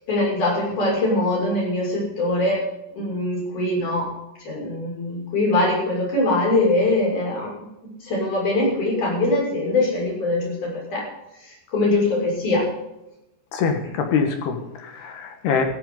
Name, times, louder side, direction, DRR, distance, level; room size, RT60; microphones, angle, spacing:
voice 1, 0.1-2.6 3.0-4.1 4.4-7.5 7.8-11.1 11.7-12.7, left 2 dB, 40° left, -3 dB, 7.7 m, -22 dB
voice 2, 13.5-15.6, left 6 dB, 65° left, 5 dB, 3.3 m, -24 dB
16.5 x 15.5 x 4.0 m, 0.90 s
omnidirectional pair, 5.5 m